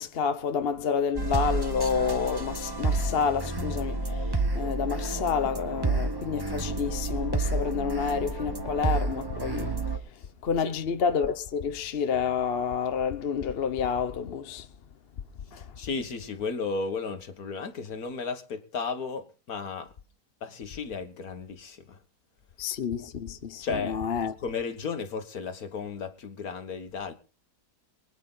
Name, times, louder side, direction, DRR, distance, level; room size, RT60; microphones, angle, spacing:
voice 1, 0.0-4.2 4.5-9.7 10.4-14.7 15.5-15.6 22.6-24.3, left 6 dB, 45° left, 0.9 m, -29 dB
sound 1, 1.2-10.0, right 3 dB, 20° right, 0.8 m, -30 dB
voice 2, 15.5-19.9 20.4-22.0 23.6-24.0 24.4-27.1, left 4 dB, 60° left, 1.9 m, -34 dB
24.0 x 9.3 x 3.9 m
omnidirectional pair, 1.8 m